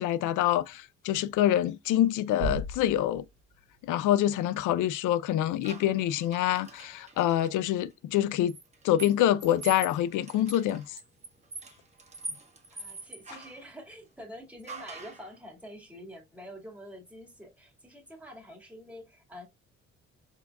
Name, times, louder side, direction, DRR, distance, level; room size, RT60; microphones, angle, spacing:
voice 1, 0.0-3.2 3.8-8.5 8.8-10.8, left 12 dB, 90° left, 0.5 m, -26 dB
Bass drum, 2.4-4.1, right 2 dB, 70° right, 1.0 m, -37 dB
sound 1, 5.6-7.5 8.5-13.6 14.7-15.3, right 3 dB, 20° right, 1.5 m, -43 dB
voice 2, 12.7-19.5, equal, 5° right, 2.1 m, -47 dB
4.7 x 4.0 x 2.3 m
cardioid pair, 90°, 30 cm